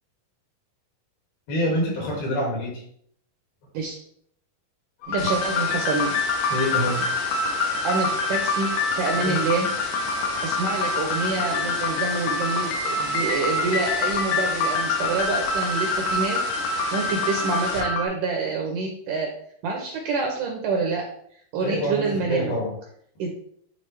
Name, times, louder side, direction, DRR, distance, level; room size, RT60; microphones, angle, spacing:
voice 1, 1.5-2.8 6.5-7.1 9.1-9.4 21.6-22.7, equal, 65° left, -2 dB, 4.0 m, -26 dB
sound 1, 5.0-18.1, left 3 dB, 90° left, 3.1 m, -26 dB
voice 2, 5.1-6.1 7.8-8.7 9.0-9.7 10.4-19.3 19.6-21.1 21.5-22.5 23.2-23.3, right 4 dB, 75° right, 1 dB, 2.0 m, -27 dB
sound 2, 5.2-17.8, left 2 dB, 45° left, 1.4 m, -35 dB
10.5 x 3.7 x 3.3 m, 0.66 s
omnidirectional pair, 4.6 m